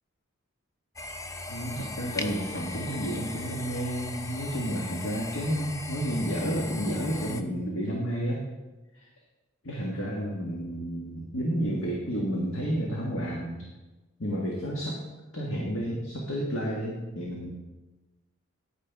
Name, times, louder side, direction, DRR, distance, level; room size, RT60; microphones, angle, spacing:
sound 1, 1.0-7.4, left 2 dB, 15° left, 0.4 m, -38 dB
voice 1, 1.5-8.4 8.9-9.0 9.6-13.6 14.2-15.0 15.3-17.5, equal, 65° left, -3 dB, 1.6 m, -31 dB
10.5 x 9.6 x 3.5 m, 1.1 s
head